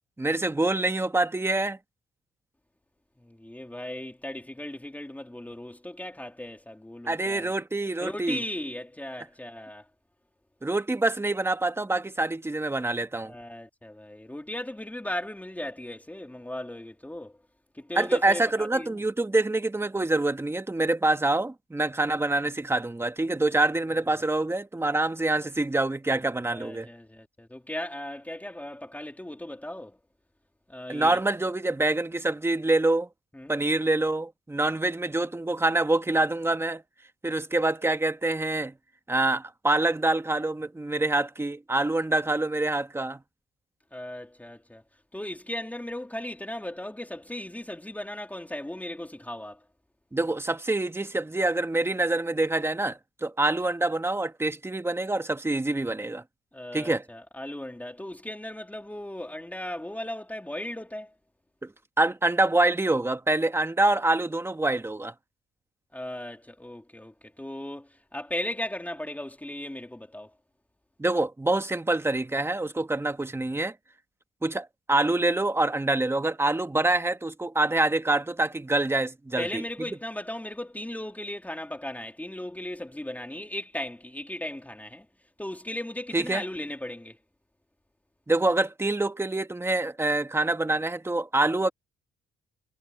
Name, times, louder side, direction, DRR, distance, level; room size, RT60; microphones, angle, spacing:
voice 1, 0.2-1.8 7.0-8.4 10.6-13.3 17.9-26.9 30.9-33.1 33.5-36.8 37.2-38.7 39.1-43.2 50.1-56.2 56.7-57.0 61.6-61.7 62.0-65.1 71.0-73.7 74.4-79.6 86.1-86.4 88.3-91.7, right 2 dB, 10° right, 1.5 m, -26 dB
voice 2, 3.2-7.5 8.0-9.9 13.2-17.4 17.7-19.0 26.5-30.0 30.7-31.2 33.3-33.5 43.9-44.8 45.1-49.6 56.5-61.1 65.9-70.3 79.4-85.1 85.4-87.2, left 1 dB, 10° left, 3.5 m, -37 dB
cardioid pair, 90°, 20 cm